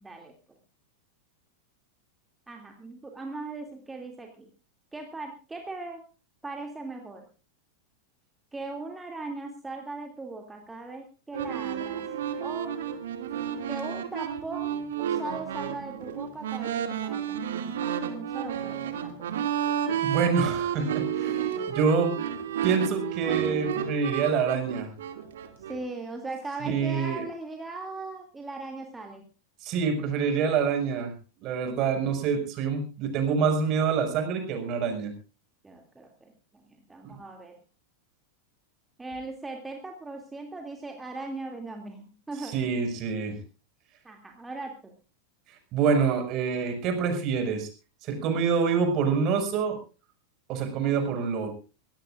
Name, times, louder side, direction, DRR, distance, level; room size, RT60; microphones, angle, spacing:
voice 1, 0.0-0.3 2.5-4.5 4.9-6.0 6.4-7.3 8.5-12.0 12.4-12.8 13.7-19.3 25.7-29.2 35.6-37.5 39.0-42.5 44.0-44.9, right 3 dB, 10° right, 2 dB, 2.7 m, -39 dB
sound 1, 11.3-25.8, right 9 dB, 60° right, 2.5 m, -31 dB
voice 2, 20.0-22.1 22.6-24.9 26.7-27.2 29.6-31.1 31.4-35.1 37.0-37.1 42.4-43.4 45.7-47.7 48.0-49.8 50.5-51.5, right 6 dB, 35° right, 6 dB, 5.8 m, -26 dB
24.0 x 17.5 x 2.5 m, 0.35 s
figure-of-eight pair, 90°, 0 cm